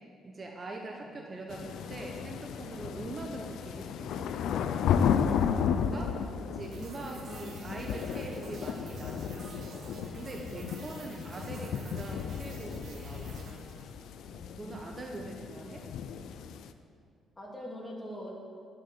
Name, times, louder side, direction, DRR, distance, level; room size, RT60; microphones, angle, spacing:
voice 1, 0.2-4.3 5.5-6.2 6.4-9.9 10.1-13.3 14.5-15.8, right 2 dB, 30° right, 1 dB, 1.2 m, -43 dB
voice 2, 1.0-1.6 14.2-15.2 17.4-18.4, equal, 15° left, -3 dB, 3.0 m, -45 dB
sound 1, 1.5-16.7, left 7 dB, 80° left, 0.5 m, -34 dB
sound 2, 6.6-14.2, right 3 dB, 60° right, 2.7 m, -48 dB
11.0 x 6.6 x 7.6 m, 2.3 s
cardioid pair, 90°, 0 cm